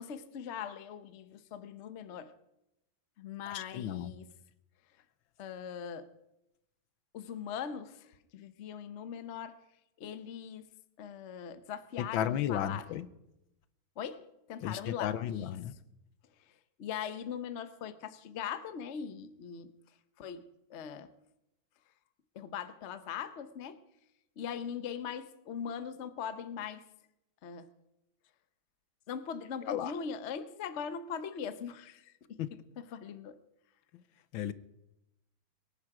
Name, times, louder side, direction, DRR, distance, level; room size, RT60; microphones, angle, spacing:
voice 1, 0.0-2.3 3.2-4.2 5.4-6.1 7.1-9.6 10.0-10.6 11.0-12.8 14.0-14.2 14.5-15.5 16.4-19.7 20.2-21.1 22.3-23.8 24.4-26.8 27.4-27.7 29.1-32.6 32.9-33.4, left 7 dB, 50° left, 0.9 m, -41 dB
voice 2, 3.5-4.1 12.0-13.1 14.6-15.7 29.6-29.9 32.4-32.5 33.9-34.0 34.3-34.5, left 10 dB, 75° left, 1.5 m, -34 dB
23.0 x 11.0 x 4.9 m
omnidirectional pair, 2.2 m